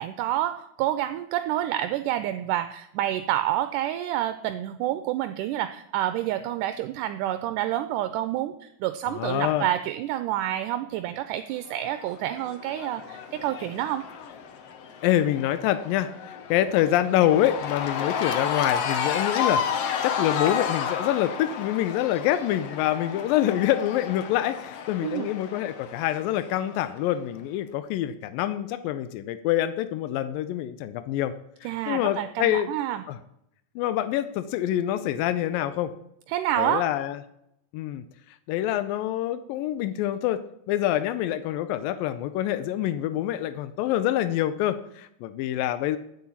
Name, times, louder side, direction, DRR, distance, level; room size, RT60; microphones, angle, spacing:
voice 1, 0.0-14.1 25.0-25.3 31.6-33.0 36.3-36.8, right 13 dB, 80° right, 10 dB, 2.0 m, -28 dB
voice 2, 9.1-9.7 15.0-31.3 31.6-32.7 33.1-33.2 33.8-35.9 36.6-37.2 37.7-38.0 38.5-46.0, left 12 dB, 90° left, 12 dB, 2.4 m, -26 dB
Cheering / Crowd, 11.7-27.0, left 7 dB, 65° left, 1.7 m, -32 dB
9.7 x 8.5 x 8.4 m, 0.79 s
omnidirectional pair, 4.0 m